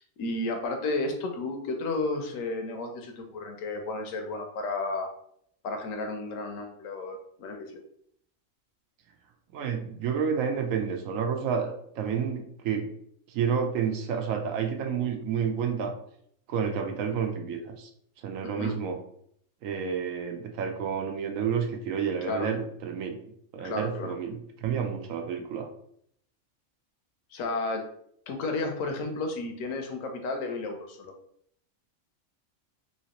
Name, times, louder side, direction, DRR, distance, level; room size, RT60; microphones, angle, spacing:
voice 1, 0.0-5.1 5.6-7.8 18.4-18.7 22.2-22.5 23.6-24.1 27.3-27.9 28.3-31.1, left 2 dB, 75° left, 4 dB, 1.0 m, -32 dB
voice 2, 9.5-12.9 13.3-15.9 16.5-17.9 18.2-19.0 19.6-23.2 23.5-25.7, right 7 dB, 75° right, 4 dB, 1.0 m, -30 dB
3.1 x 2.8 x 2.9 m, 0.67 s
omnidirectional pair, 1.4 m